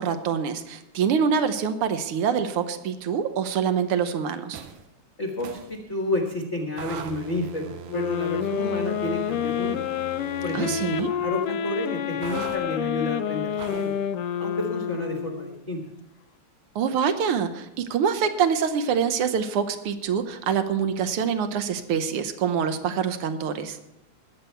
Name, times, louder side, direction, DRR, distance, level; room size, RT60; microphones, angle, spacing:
voice 1, 0.0-4.6 10.5-11.1 16.7-23.8, right 7 dB, 70° right, 9 dB, 1.4 m, -25 dB
sound 1, 4.5-4.9 5.4-5.7 6.8-11.1 12.2-12.6 13.6-14.0, right 8 dB, 85° right, 2.3 m, -40 dB
voice 2, 5.2-9.8 10.4-13.9 14.4-15.8, left 1 dB, 40° left, 1 dB, 1.1 m, -31 dB
sound 2, 7.9-15.6, left 9 dB, 75° left, 1.4 m, -28 dB
20.5 x 8.1 x 4.5 m, 0.90 s
omnidirectional pair, 3.4 m